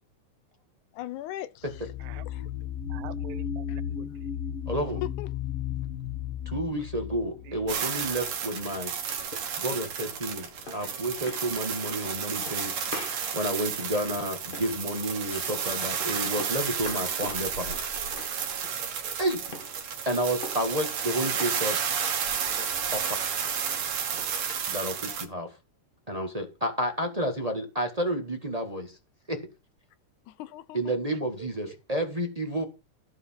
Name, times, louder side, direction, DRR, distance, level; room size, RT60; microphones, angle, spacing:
voice 1, 0.9-1.7 2.3-2.5 3.7-3.8 5.0-5.3 10.8-10.9 21.4-21.5 30.3-30.9, left 13 dB, 80° left, 2.2 m, -38 dB
sound 1, 1.6-8.3, left 9 dB, 60° left, 1.7 m, -35 dB
voice 2, 2.9-4.1 7.4-7.8 31.4-31.8, right 11 dB, 80° right, 2.0 m, -46 dB
voice 3, 4.7-5.0 6.4-8.9 9.6-12.8 13.3-17.8 19.2-19.4 20.0-21.8 22.9-23.2 24.7-25.5 26.1-29.0 29.3-29.4 30.7-32.6, right 1 dB, 25° right, 0.9 m, -30 dB
sound 2, 7.7-25.3, right 7 dB, 60° right, 2.5 m, -32 dB
sound 3, 9.2-24.7, left 2 dB, 35° left, 0.9 m, -45 dB
13.5 x 4.7 x 7.5 m
omnidirectional pair, 3.5 m